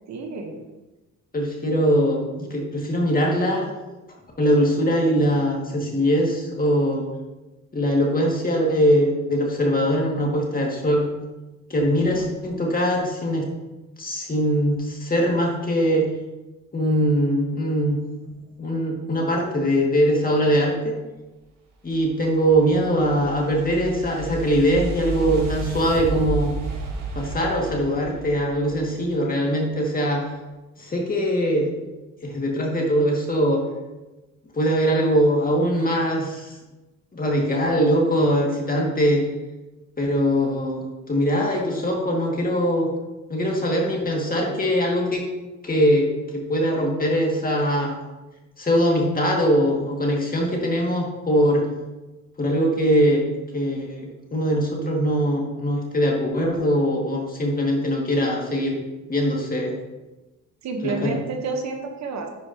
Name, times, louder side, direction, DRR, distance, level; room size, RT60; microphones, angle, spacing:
voice 1, 0.1-0.6 60.6-62.3, right 3 dB, 65° right, 4 dB, 1.1 m, -29 dB
voice 2, 1.3-3.7 4.4-7.1 7.7-11.0 11.7-13.5 14.0-16.1 16.7-18.0 18.6-20.9 21.8-26.5 27.2-30.3 30.8-31.7 32.2-33.6 34.5-36.5 37.1-39.2 40.0-42.9 43.3-45.2 45.6-47.9 48.6-51.6 52.4-53.2 53.5-58.8 59.1-59.7 60.8-61.1, equal, 30° left, -1 dB, 2.0 m, -22 dB
sound 1, 21.9-29.2, right 3 dB, 80° right, 1.7 m, -32 dB
10.5 x 4.8 x 2.8 m, 1.1 s
cardioid pair, 90°, 30 cm